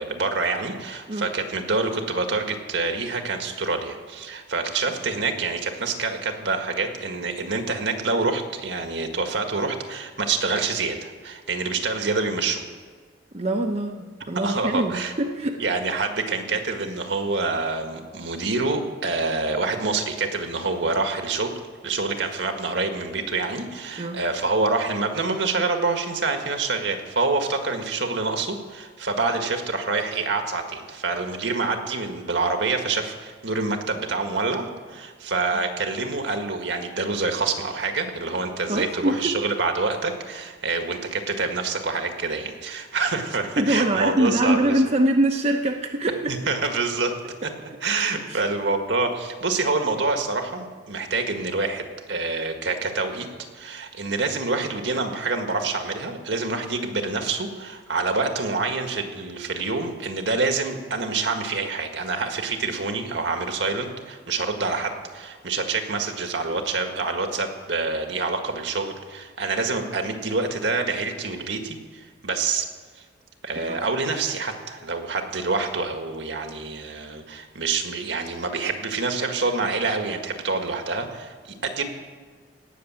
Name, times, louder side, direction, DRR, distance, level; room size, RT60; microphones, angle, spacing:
voice 1, 0.0-12.6 14.4-15.1 15.6-21.5 21.8-44.7 46.3-47.2 47.4-47.5 47.8-53.3 53.5-72.7 73.4-81.8, right 3 dB, 75° right, 5 dB, 1.7 m, -26 dB
voice 2, 13.3-15.6 24.0-24.2 38.7-39.3 43.6-46.3 48.2-48.4 73.6-73.8, right 1 dB, 35° right, 2 dB, 0.9 m, -24 dB
17.5 x 6.9 x 8.8 m, 1.5 s
head